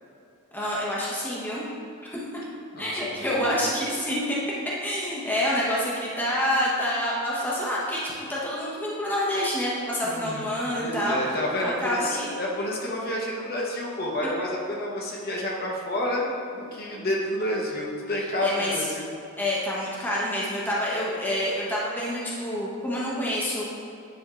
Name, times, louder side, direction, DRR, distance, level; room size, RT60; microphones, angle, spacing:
voice 1, 0.5-1.7 2.0-2.2 2.8-4.4 4.8-11.4 11.6-12.4 18.4-18.9 19.4-23.6, equal, 10° left, -6 dB, 0.9 m, -27 dB
voice 2, 2.7-3.7 10.0-10.5 10.7-16.3 16.5-19.0, left 1 dB, 45° left, -2 dB, 0.9 m, -29 dB
9.7 x 3.5 x 3.6 m, 2.6 s
head